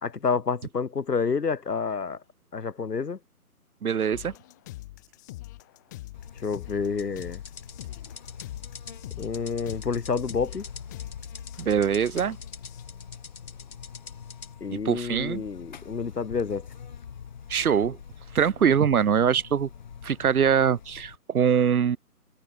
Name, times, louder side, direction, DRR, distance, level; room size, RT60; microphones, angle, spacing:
voice 1, 0.0-2.2 2.5-3.2 6.4-7.4 9.2-10.6 14.6-16.7, left 5 dB, 85° left, 2.6 m, -29 dB
voice 2, 3.8-4.3 11.6-12.4 14.8-15.4 17.5-18.0 18.3-19.7 20.0-22.0, right 7 dB, 65° right, 0.8 m, -23 dB
sound 1, 4.1-12.8, left 17 dB, 10° left, 4.1 m, -44 dB
Buzz, 6.1-21.2, left 7 dB, 30° left, 6.8 m, -44 dB
sound 2, 7.0-14.5, left 5 dB, 60° left, 3.3 m, -45 dB
hypercardioid pair, 180°, 46 cm